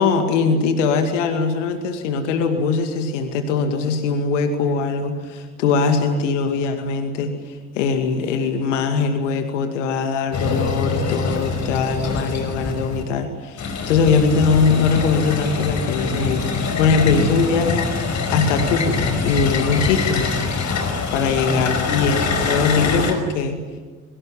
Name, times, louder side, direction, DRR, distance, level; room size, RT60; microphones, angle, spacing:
voice 1, 0.0-20.3 21.1-23.6, left 5 dB, 70° left, 7 dB, 2.4 m, -21 dB
sound 1, 10.3-13.0 13.6-23.1, left 4 dB, 50° left, 5.4 m, -24 dB
24.0 x 23.5 x 9.8 m, 1.3 s
figure-of-eight pair, 50°, 37 cm